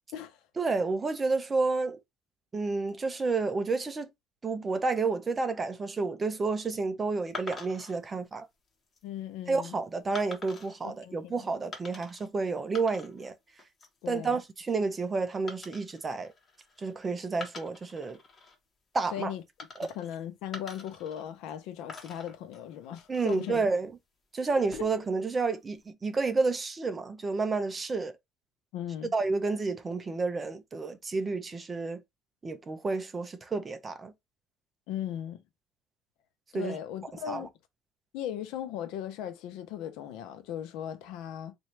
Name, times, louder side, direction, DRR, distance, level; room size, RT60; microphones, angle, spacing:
voice 1, 0.6-2.0 2.5-4.1 4.4-8.5 9.5-13.3 14.1-16.3 16.8-18.2 18.9-19.3 23.1-23.9 24.3-28.1 29.1-32.0 32.4-34.1 36.5-36.8 37.3-37.5, right 4 dB, 20° right, 0.7 m, -30 dB
sound 1, 7.3-8.0 8.7-9.0 10.1-10.7 11.7-12.3 12.6-13.3 13.6-14.0 15.5-16.9 17.3-18.6 19.6-20.2 20.5-21.6 21.9-23.6 24.5-25.1, left 4 dB, 25° left, 1.3 m, -45 dB
voice 2, 9.0-9.7 10.8-11.5 14.0-14.4 19.1-19.4 20.0-23.6 28.7-29.1 34.9-35.4 36.5-37.5 38.1-41.5, left 10 dB, 80° left, 0.8 m, -38 dB
4.4 x 2.6 x 3.2 m
cardioid pair, 135°, 0 cm